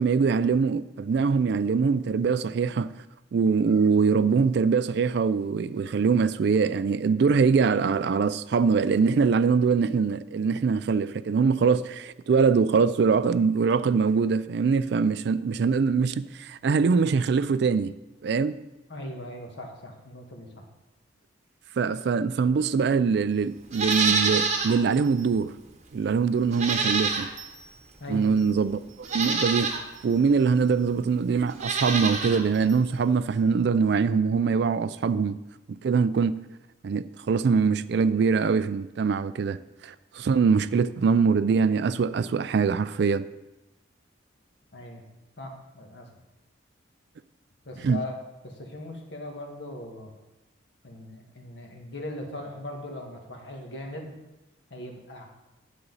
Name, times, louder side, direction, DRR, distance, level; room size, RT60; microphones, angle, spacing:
voice 1, 0.0-2.9 3.3-17.9 18.2-18.6 21.8-25.5 25.9-27.3 28.1-28.8 29.1-29.7 30.0-35.4 35.8-36.4 36.8-39.6 39.8-43.2 47.8-48.0, right 5 dB, 55° right, 0.3 m, -23 dB
voice 2, 18.9-20.5 28.0-28.3 44.7-45.0 45.4-46.1 47.6-48.2 48.4-50.1 50.8-54.1 54.7-55.3, left 1 dB, 60° left, 1.6 m, -39 dB
Livestock farm animals working animals, 23.7-24.8 25.2-25.3 26.5-27.6 28.4-28.5 29.0-29.8 31.5-32.4 32.7-32.8, right 4 dB, 35° right, 1.0 m, -26 dB
9.7 x 7.7 x 4.0 m
head